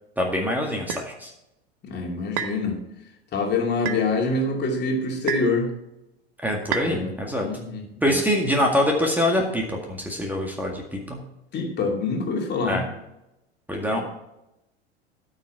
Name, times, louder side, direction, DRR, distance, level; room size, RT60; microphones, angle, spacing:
voice 1, 0.2-1.3 6.4-7.5 8.0-11.2 12.7-12.9 13.7-14.0, left 1 dB, 5° right, 1 dB, 1.9 m, -24 dB
sound 1, 0.9-1.1 2.4-2.6 3.8-4.1 5.3-5.6 6.7-6.9, right 9 dB, 55° right, 1.0 m, -28 dB
voice 2, 1.8-2.8 3.3-5.7 6.8-7.1 7.4-8.2 11.5-12.8, left 3 dB, 30° left, 1 dB, 2.6 m, -25 dB
13.5 x 6.5 x 4.5 m, 0.88 s
figure-of-eight pair, 75°, 32 cm